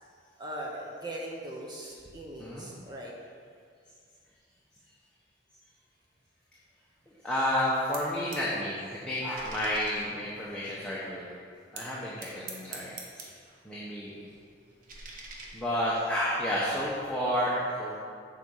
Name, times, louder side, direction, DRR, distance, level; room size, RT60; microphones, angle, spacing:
voice 1, 0.4-3.1, right 1 dB, 25° right, -2 dB, 0.8 m, -40 dB
voice 2, 7.2-11.3 11.7-12.9 13.6-14.1 15.5-18.0, equal, 5° left, -8 dB, 1.0 m, -30 dB
sound 1, 7.6-8.5 8.8-11.0 11.8-13.6 13.9-16.1, right 3 dB, 50° right, 1.0 m, -47 dB
6.9 x 4.8 x 7.0 m, 2.2 s
head